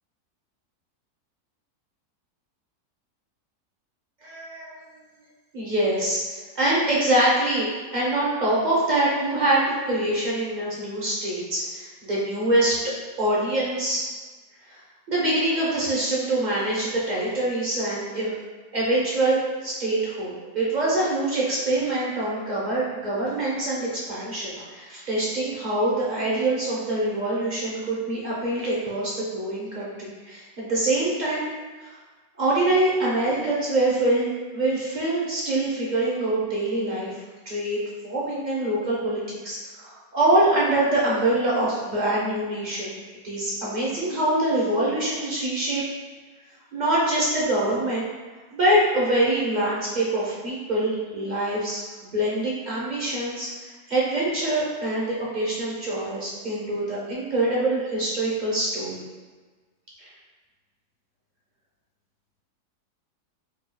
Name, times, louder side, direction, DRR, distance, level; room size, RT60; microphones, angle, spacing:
voice 1, 4.2-4.8 5.5-14.1 14.7-14.8 15.1-18.3 18.7-31.5 31.8-32.0 32.4-37.1 37.5-43.0 43.2-45.8 46.7-48.1 48.5-51.8 52.1-59.0 60.0-60.1, right 1 dB, 45° right, -6 dB, 0.6 m, -24 dB
5.3 x 2.3 x 2.2 m, 1.4 s
omnidirectional pair, 1.7 m